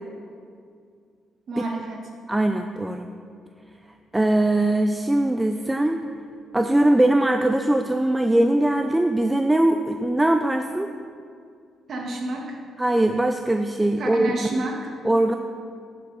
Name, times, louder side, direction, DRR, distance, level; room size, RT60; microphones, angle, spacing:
voice 1, 1.5-2.1 11.9-12.6 14.0-14.9, right 2 dB, 55° right, 1 dB, 1.5 m, -30 dB
voice 2, 2.3-3.1 4.1-6.0 6.5-10.9 12.8-14.3 14.6-14.7 15.0-15.4, right 1 dB, 10° right, 6 dB, 0.4 m, -21 dB
11.0 x 6.8 x 4.0 m, 2.3 s
cardioid pair, 90°, 0 cm